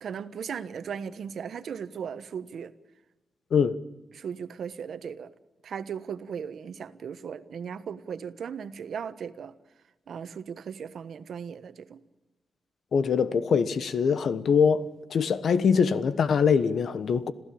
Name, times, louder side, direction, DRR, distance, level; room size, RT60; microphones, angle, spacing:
voice 1, 0.0-2.7 4.1-5.3 5.6-9.5 10.1-12.0, right 7 dB, 75° right, 1.2 m, -37 dB
voice 2, 12.9-14.8 15.1-17.3, left 6 dB, 70° left, 1.2 m, -23 dB
27.0 x 15.5 x 8.7 m
cardioid pair, 90°, 0 cm